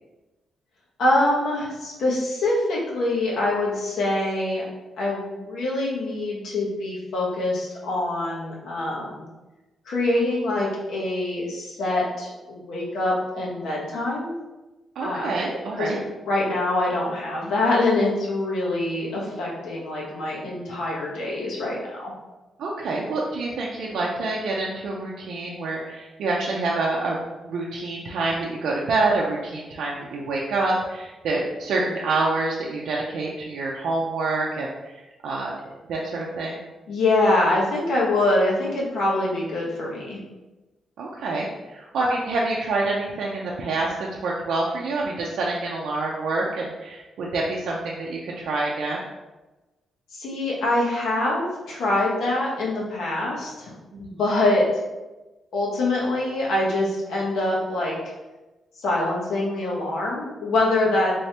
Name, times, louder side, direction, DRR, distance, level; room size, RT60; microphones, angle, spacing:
voice 1, 1.0-4.6 5.0-9.3 9.9-14.3 15.0-15.3 15.8-22.1 36.9-40.2 50.1-53.7 54.0-54.6 55.5-57.9 58.8-61.1, left 2 dB, 80° left, -4 dB, 1.0 m, -24 dB
voice 2, 15.0-16.0 22.6-27.2 27.4-35.5 35.9-36.6 41.0-49.0 53.9-54.2, right 2 dB, 75° right, -3 dB, 0.5 m, -27 dB
3.3 x 3.3 x 2.8 m, 1.1 s
cardioid pair, 130°, 0 cm